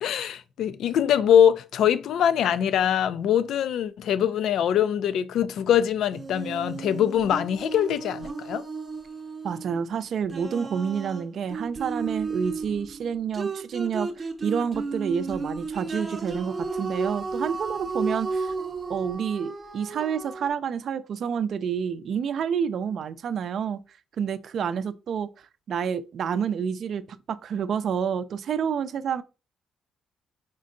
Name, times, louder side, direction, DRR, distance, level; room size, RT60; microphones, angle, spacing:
voice 1, 0.0-8.6, left 9 dB, 75° left, 0.4 m, -23 dB
sound 1, 6.1-9.9 10.3-20.5, right 4 dB, 30° right, 0.7 m, -33 dB
voice 2, 9.4-18.5 18.9-23.8 24.2-25.3 25.7-27.0 27.3-29.2, right 7 dB, 60° right, 0.4 m, -29 dB
4.2 x 3.7 x 2.5 m
cardioid pair, 90°, 0 cm